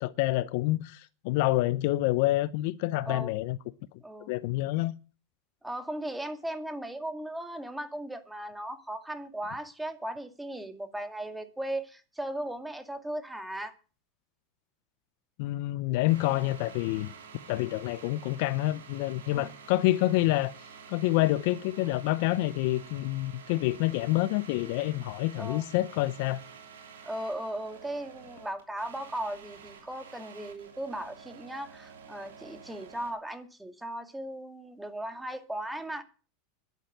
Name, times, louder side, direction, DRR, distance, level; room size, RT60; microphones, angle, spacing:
voice 1, 0.0-3.6 4.3-4.9 15.4-17.1 17.5-20.5 20.9-26.4, left 17 dB, 65° left, 0.7 m, -27 dB
voice 2, 5.6-13.7 16.3-16.5 19.3-19.5 25.4-25.6 27.0-36.0, right 1 dB, 5° right, 2.1 m, -37 dB
sound 1, 16.1-33.1, right 6 dB, 90° right, 3.1 m, -50 dB
11.0 x 8.3 x 9.1 m
hypercardioid pair, 105°, 0 cm